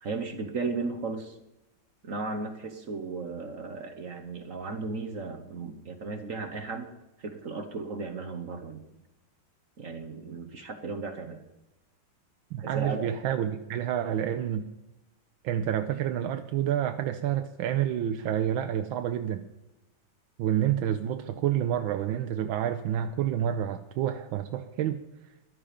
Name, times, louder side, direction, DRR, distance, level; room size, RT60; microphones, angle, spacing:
voice 1, 0.0-1.4 2.0-6.9 7.2-8.8 9.8-11.4 12.6-13.1, right 4 dB, 50° right, 6 dB, 1.1 m, -35 dB
voice 2, 12.5-14.7 15.4-19.4 20.4-25.0, right 10 dB, 80° right, 7 dB, 1.4 m, -28 dB
13.5 x 11.5 x 5.1 m, 0.96 s
omnidirectional pair, 2.2 m